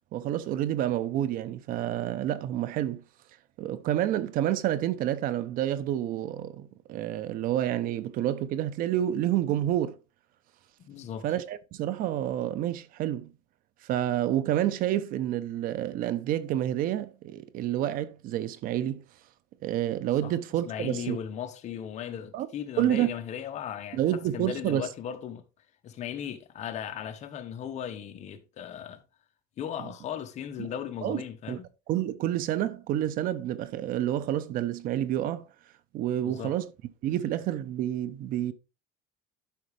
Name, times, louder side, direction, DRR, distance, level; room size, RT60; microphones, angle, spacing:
voice 1, 0.1-3.0 3.6-10.0 11.2-13.3 13.8-19.0 19.6-21.2 22.3-22.5 22.8-23.1 23.9-24.9 29.8-29.9 30.6-30.7 31.0-31.2 31.5-31.6 31.9-35.5 35.9-36.7 37.0-38.5, right 12 dB, 50° right, 0.9 m, -29 dB
voice 2, 10.8-11.2 20.2-20.3 20.6-25.4 25.8-29.0 29.6-31.6 36.2-36.5, left 9 dB, 40° left, 1.3 m, -37 dB
12.0 x 4.8 x 3.3 m
cardioid pair, 145°, 18 cm